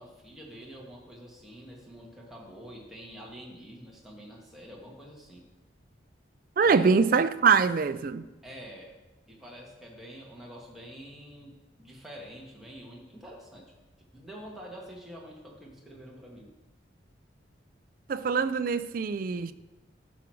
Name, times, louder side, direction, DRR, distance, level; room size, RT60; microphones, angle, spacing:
voice 1, 0.0-5.4 6.6-7.1 8.4-9.0 9.3-13.7 14.1-16.5, equal, ahead, 1.6 m, -46 dB
voice 2, 6.6-8.3 18.1-19.5, right 5 dB, 45° right, 0.3 m, -24 dB
10.5 x 6.0 x 4.7 m
head